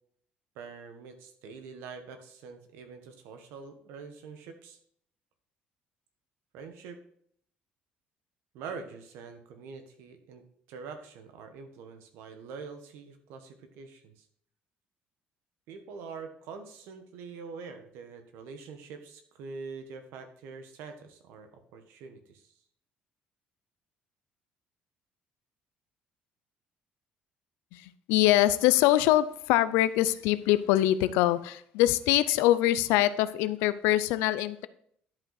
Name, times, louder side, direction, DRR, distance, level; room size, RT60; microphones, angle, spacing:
voice 1, 0.5-4.8 6.5-7.0 8.5-14.2 15.7-22.5, right 5 dB, 80° right, 7 dB, 1.3 m, -45 dB
voice 2, 27.7-34.7, left 14 dB, 85° left, 15 dB, 0.5 m, -24 dB
11.0 x 5.3 x 4.0 m, 0.64 s
supercardioid pair, 90°, 4 cm